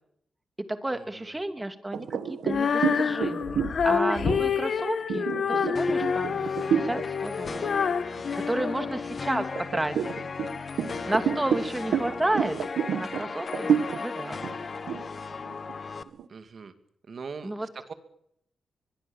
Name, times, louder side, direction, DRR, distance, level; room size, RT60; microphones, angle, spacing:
voice 1, 0.7-7.7 8.4-10.1 11.0-12.6 12.9-14.4 17.4-17.7, right 1 dB, 15° right, 7 dB, 2.9 m, -32 dB
sound 1, 1.9-7.1 7.5-7.8 8.2-9.0 9.5-16.3, right 8 dB, 85° right, 1.2 m, -30 dB
Female singing, 2.4-9.5, left 6 dB, 60° left, 1.3 m, -28 dB
sound 2, 5.8-16.0, left 4 dB, 40° left, 1.4 m, -36 dB
voice 2, 8.6-9.0 16.3-16.7 17.1-17.9, right 5 dB, 50° right, 9 dB, 2.6 m, -42 dB
23.5 x 22.0 x 7.4 m, 0.73 s
cardioid pair, 95°, 0 cm